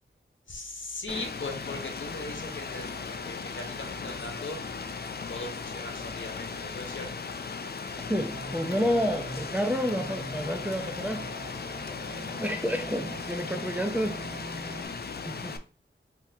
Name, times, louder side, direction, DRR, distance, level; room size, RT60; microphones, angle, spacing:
voice 1, 0.5-4.6 5.3-7.1, left 2 dB, 70° left, 2 dB, 1.0 m, -39 dB
Rain, 1.1-15.6, left 5 dB, 50° left, 0.4 m, -37 dB
sound 1, 1.6-11.2, right 2 dB, 15° left, 1.4 m, -53 dB
voice 2, 8.1-11.3 12.4-14.2 15.2-15.6, equal, 5° right, 4 dB, 0.5 m, -29 dB
sound 2, 8.3-14.8, right 1 dB, 45° right, 0.9 m, -42 dB
3.7 x 2.9 x 2.8 m, 0.37 s
wide cardioid pair, 50°, 21 cm